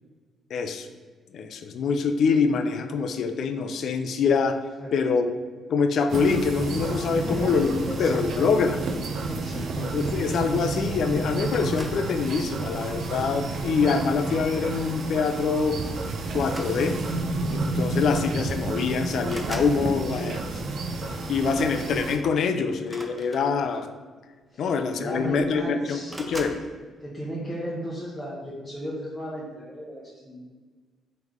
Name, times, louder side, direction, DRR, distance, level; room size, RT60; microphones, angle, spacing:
voice 1, 0.5-0.9 1.3-4.6 4.9-5.3 5.7-8.8 9.5-15.8 16.3-17.0 17.5-20.4 21.3-23.9 24.6-26.6, left 5 dB, 65° left, 8 dB, 0.3 m, -25 dB
sound 1, 6.1-22.2, right 3 dB, 65° right, 0.4 m, -30 dB
voice 2, 7.2-8.6 9.3-10.0 24.5-24.7 25.0-26.1 27.0-30.4, equal, 15° left, -6 dB, 0.8 m, -35 dB
sound 2, 11.5-12.1 13.0-13.3 14.8-15.0 15.3-15.5 16.4-17.2 18.2-18.3 18.6-19.8 22.8-23.9 24.8-24.9 25.1-25.6 26.1-26.6, right 1 dB, 15° right, 0.5 m, -41 dB
3.4 x 3.2 x 3.6 m, 1.4 s
cardioid pair, 90°, 0 cm